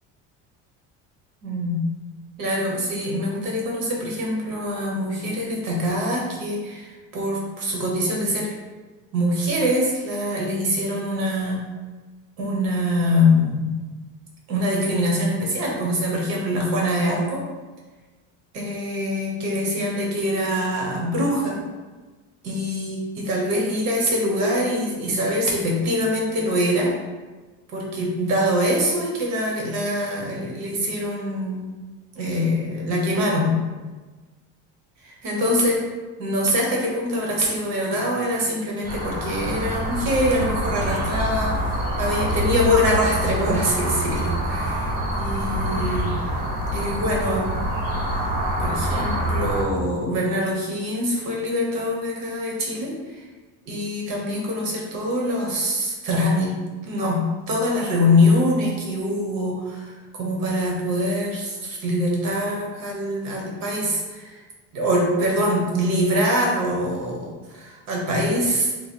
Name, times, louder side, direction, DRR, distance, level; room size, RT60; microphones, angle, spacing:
voice 1, 1.4-1.8 2.4-8.5 9.1-11.7 12.4-13.7 14.5-17.4 18.5-21.6 22.4-26.9 27.7-31.6 32.1-33.6 35.0-35.8 36.2-46.1 46.7-47.7 48.6-53.2 53.6-56.6 56.9-64.4 64.7-68.7, left 1 dB, 75° right, -2 dB, 1.1 m, -24 dB
sound 1, 38.8-49.6, right 1 dB, 25° right, 0.9 m, -26 dB
3.2 x 2.2 x 4.3 m, 1.3 s
cardioid pair, 145°, 34 cm